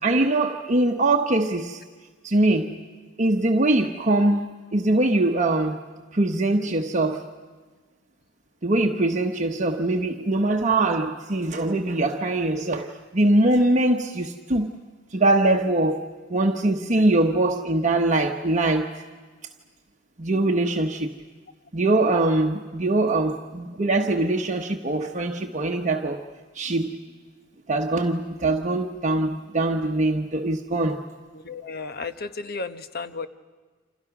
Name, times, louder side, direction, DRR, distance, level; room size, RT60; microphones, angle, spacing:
voice 1, 0.0-1.8 2.2-2.9 3.2-5.8 6.1-7.3 8.6-14.7 15.1-19.0 20.2-21.1 21.7-26.2 26.5-27.0 27.7-31.1, right 2 dB, 40° right, 1.0 m, -22 dB
voice 2, 31.3-33.3, left 4 dB, 50° left, 1.1 m, -33 dB
29.5 x 27.0 x 6.0 m
head